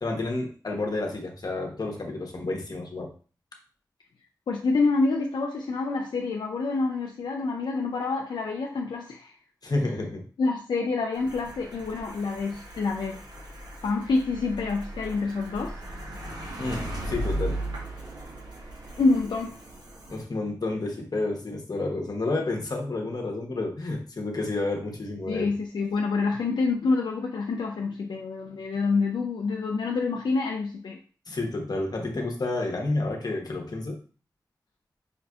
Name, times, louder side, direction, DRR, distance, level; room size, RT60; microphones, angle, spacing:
voice 1, 0.0-3.1 9.6-10.2 16.6-17.6 20.1-25.5 31.3-34.0, left 2 dB, 60° left, 1 dB, 1.0 m, -30 dB
voice 2, 4.5-9.3 10.4-13.2 13.8-15.7 16.3-16.4 19.0-19.6 25.3-31.0, left 3 dB, 90° left, 1 dB, 0.4 m, -27 dB
sound 1, 11.1-20.2, right 1 dB, 65° right, 1.1 m, -37 dB
5.2 x 2.5 x 2.3 m, 0.39 s
cardioid pair, 55°, 8 cm